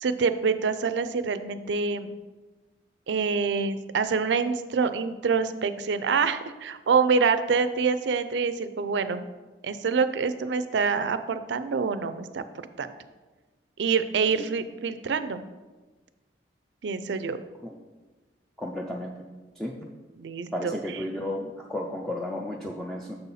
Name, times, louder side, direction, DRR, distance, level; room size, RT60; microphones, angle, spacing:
voice 1, 0.0-2.1 3.1-9.3 9.6-12.9 13.8-15.4 16.8-17.4 20.2-20.7, right 5 dB, 75° right, 11 dB, 0.4 m, -26 dB
voice 2, 18.6-19.2 19.6-19.8 20.5-23.2, left 1 dB, ahead, -1 dB, 0.4 m, -33 dB
6.7 x 4.1 x 5.5 m, 1.2 s
head